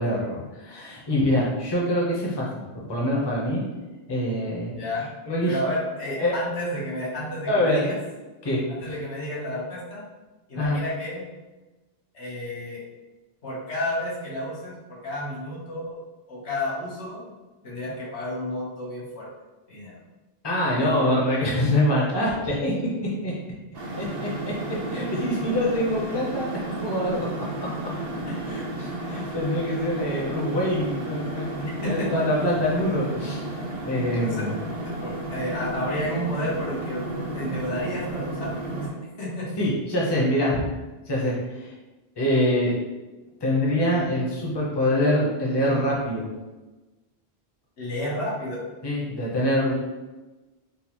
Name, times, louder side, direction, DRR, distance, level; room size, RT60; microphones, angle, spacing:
voice 1, 0.0-2.5 2.7-3.6 4.1-4.8 5.3-5.6 6.2-6.3 7.5-7.9 8.4-9.0 10.6-10.8 20.4-22.7 23.2-23.3 24.0-24.3 24.7-27.3 28.4-33.5 33.9-34.6 39.6-40.6 41.1-41.7 42.2-42.7 43.4-46.3 48.8-49.7, left 1 dB, 25° left, -4 dB, 0.7 m, -25 dB
voice 2, 4.7-5.1 5.5-8.0 8.7-10.0 10.5-11.2 12.1-12.8 13.4-16.0 16.3-17.3 17.6-19.3 19.7-19.9 28.3-28.5 29.2-29.4 31.7-32.1 32.4-32.6 34.1-34.5 34.8-37.1 37.3-39.5 47.8-48.6, left 1 dB, 80° left, -6 dB, 1.3 m, -31 dB
sound 1, 23.7-38.9, right 1 dB, 65° right, 0.9 m, -33 dB
3.8 x 2.4 x 2.9 m, 1.1 s
omnidirectional pair, 1.1 m